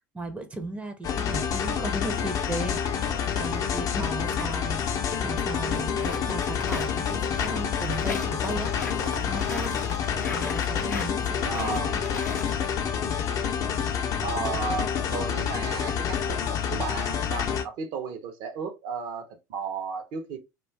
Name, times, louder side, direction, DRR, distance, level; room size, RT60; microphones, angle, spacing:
voice 1, 0.1-4.9 5.2-8.7 9.2-9.8 10.3-12.0, right 2 dB, 15° right, 0.6 m, -36 dB
sound 1, 1.0-17.6, left 7 dB, 40° left, 0.5 m, -28 dB
sound 2, 5.7-12.5, left 4 dB, 90° left, 0.4 m, -38 dB
voice 2, 11.5-12.0 14.2-20.4, right 5 dB, 55° right, 0.7 m, -34 dB
2.4 x 2.3 x 3.3 m
figure-of-eight pair, 70°, 9 cm